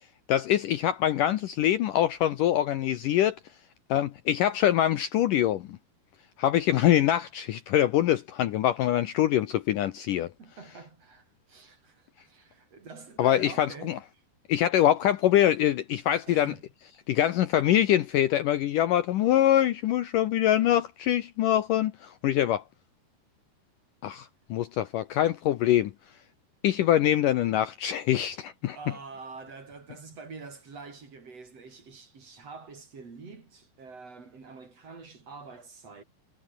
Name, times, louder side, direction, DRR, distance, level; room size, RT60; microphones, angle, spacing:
voice 1, 0.3-3.4 3.9-5.8 6.4-10.3 13.2-14.0 14.5-16.5 17.1-22.6 24.0-25.9 26.6-28.8, left 12 dB, 70° left, 2.2 m, -24 dB
voice 2, 10.4-14.2 16.3-16.6 28.8-36.0, right 4 dB, 40° right, 4.8 m, -46 dB
omnidirectional pair, 4.7 m